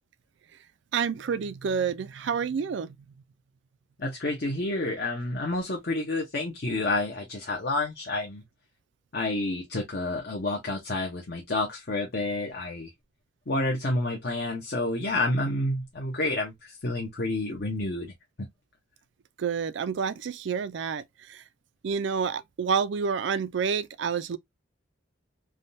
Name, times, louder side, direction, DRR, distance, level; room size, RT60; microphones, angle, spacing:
voice 1, 0.9-3.0 19.4-21.4 21.8-24.4, right 6 dB, 60° right, 0.4 m, -29 dB
voice 2, 4.0-8.4 9.1-12.9 13.5-18.1 18.4-18.5, left 2 dB, 50° left, 0.7 m, -29 dB
3.5 x 2.2 x 2.6 m
head